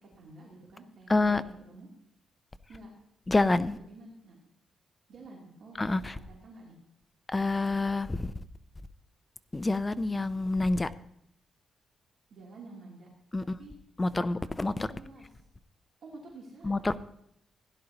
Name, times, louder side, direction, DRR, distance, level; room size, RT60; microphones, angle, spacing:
voice 1, 0.0-1.9 2.7-2.9 3.8-4.4 5.1-6.7 12.3-13.1 13.4-13.7 14.1-14.3 14.6-15.3 16.0-16.8, right 2 dB, 55° right, 3.0 m, -50 dB
voice 2, 1.1-1.4 3.3-3.8 5.8-6.1 7.3-8.3 9.5-10.9 13.3-13.5 14.0-14.9 16.6-17.0, left 2 dB, 15° left, 0.5 m, -27 dB
16.5 x 11.0 x 2.9 m
cardioid pair, 140°, 0 cm